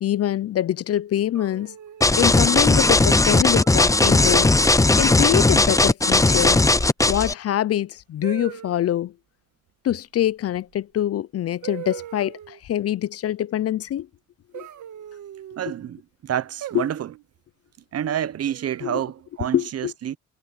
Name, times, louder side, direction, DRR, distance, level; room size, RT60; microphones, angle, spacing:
voice 1, 0.0-1.7 2.2-4.5 5.0-6.6 7.1-9.1 9.8-14.1 14.5-14.7 16.7-16.8 18.8-19.0 19.5-19.9, left 11 dB, 50° left, 0.6 m, -24 dB
sound 1, 1.3-2.2 3.5-3.9 4.3-4.7 6.1-6.7 8.2-8.8 10.7-10.8 11.6-12.6 14.5-15.6 16.6-17.2 18.5-19.0, right 13 dB, 75° right, 1.8 m, -40 dB
sound 2, 2.0-7.3, left 2 dB, 10° left, 0.7 m, -17 dB
voice 2, 15.6-17.1 17.9-20.2, right 10 dB, 55° right, 0.9 m, -28 dB
cardioid pair, 90°, 30 cm